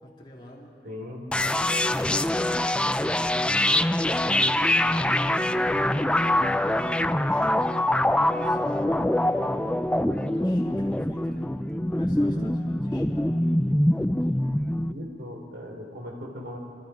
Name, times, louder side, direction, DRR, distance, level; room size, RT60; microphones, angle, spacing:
voice 1, 0.0-0.7 4.1-9.7 10.3-11.5 11.9-13.5, equal, 25° left, -3 dB, 2.5 m, -46 dB
voice 2, 0.8-1.2 14.9-16.6, left 1 dB, 65° right, 0 dB, 4.1 m, -38 dB
sound 1, 1.3-14.9, left 1 dB, 5° left, 0.5 m, -24 dB
27.0 x 26.0 x 5.2 m, 2.9 s
head